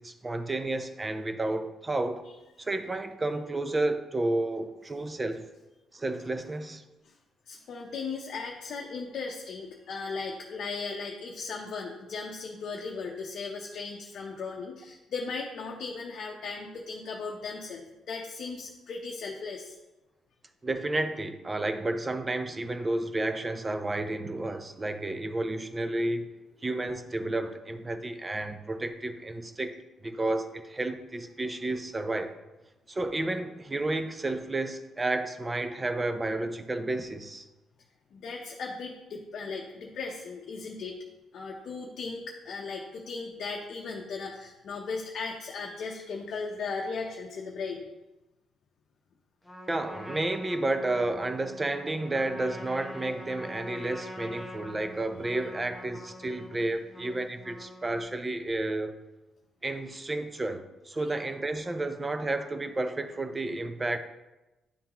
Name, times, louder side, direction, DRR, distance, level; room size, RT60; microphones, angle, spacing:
voice 1, 0.0-2.2 2.6-5.4 5.9-6.8 20.6-26.3 26.6-29.8 30.0-32.3 32.9-37.5 49.7-58.9 59.6-64.0, right 2 dB, 20° right, 9 dB, 0.6 m, -31 dB
voice 2, 7.5-19.8 38.1-41.0 41.3-47.9 61.0-61.2, left 4 dB, 65° left, 0 dB, 0.6 m, -37 dB
Trumpet, 49.4-58.1, left 1 dB, ahead, 1.4 m, -45 dB
10.0 x 3.6 x 2.9 m, 1.0 s
cardioid pair, 90°, 0 cm